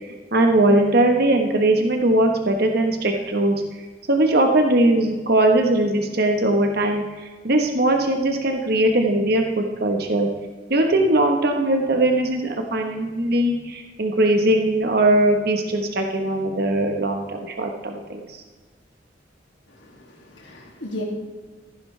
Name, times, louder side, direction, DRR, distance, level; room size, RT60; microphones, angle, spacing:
voice 1, 0.0-3.6 4.1-10.3 10.7-18.2, right 1 dB, 60° right, 3 dB, 1.3 m, -20 dB
voice 2, 19.7-21.0, left 1 dB, 85° left, -2 dB, 2.5 m, -36 dB
14.5 x 11.0 x 3.4 m, 1.4 s
head